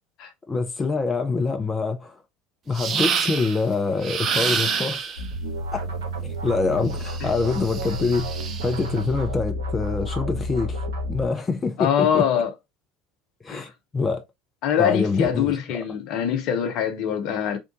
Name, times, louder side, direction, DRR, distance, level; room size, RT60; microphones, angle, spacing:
voice 1, 0.5-2.2 2.7-5.1 5.7-5.9 6.2-8.4 8.6-10.8 11.1-12.3 13.4-14.2 14.8-15.8, left 4 dB, 20° left, 0.7 m, -25 dB
sound 1, 2.7-3.6 4.0-5.3 6.9-8.8, right 6 dB, 40° right, 0.7 m, -28 dB
sound 2, 5.2-11.3, equal, 70° right, 1.3 m, -30 dB
voice 2, 11.8-12.5 13.5-13.7 14.6-17.6, left 9 dB, 55° left, 0.8 m, -23 dB
3.7 x 2.5 x 3.7 m
figure-of-eight pair, 70°, 0 cm